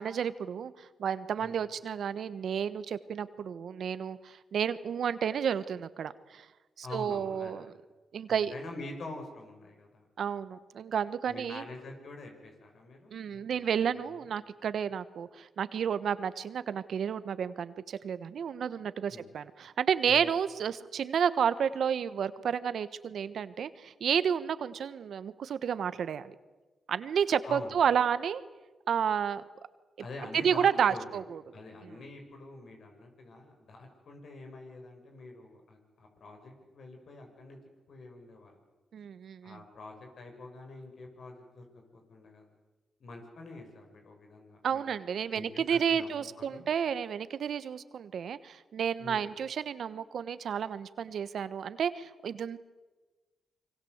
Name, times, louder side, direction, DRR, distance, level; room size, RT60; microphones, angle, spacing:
voice 1, 0.0-6.5 6.8-7.7 8.1-8.5 10.2-11.6 13.1-26.3 26.9-28.4 28.9-29.4 30.3-31.4 38.9-39.6 44.6-52.6, right 8 dB, 75° right, 14 dB, 1.2 m, -31 dB
voice 2, 1.4-1.7 6.8-7.7 8.3-10.0 11.3-14.3 19.1-19.3 20.0-20.4 27.4-27.8 30.0-31.2 31.5-37.6 37.9-38.6 39.4-41.6 41.9-42.5 43.0-45.0 45.3-46.6 49.0-49.3, left 2 dB, 70° left, 3 dB, 6.7 m, -46 dB
26.5 x 24.5 x 8.1 m, 1.2 s
supercardioid pair, 50°, 0 cm